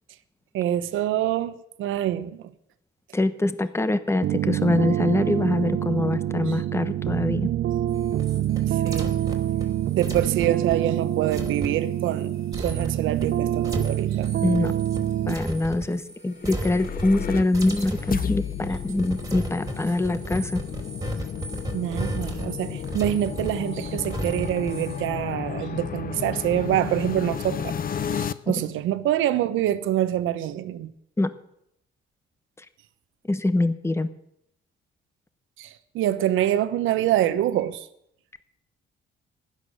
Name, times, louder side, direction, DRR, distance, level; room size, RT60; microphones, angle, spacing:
voice 1, 0.5-2.5 8.7-9.1 9.9-14.3 21.7-30.9 35.6-37.9, right 12 dB, 90° right, 1.1 m, -26 dB
voice 2, 3.1-7.5 14.4-14.7 15.3-20.6 28.5-28.6 31.2-31.3 33.3-34.1, left 2 dB, 15° left, 1.1 m, -24 dB
sound 1, 4.2-15.4, right 12 dB, 60° right, 0.5 m, -26 dB
sound 2, 7.9-16.2 16.4-17.3 17.5-25.1, right 1 dB, 15° right, 2.8 m, -35 dB
sound 3, 16.3-28.3, left 8 dB, 45° left, 0.8 m, -33 dB
15.5 x 11.0 x 6.6 m
cardioid pair, 90°, 20 cm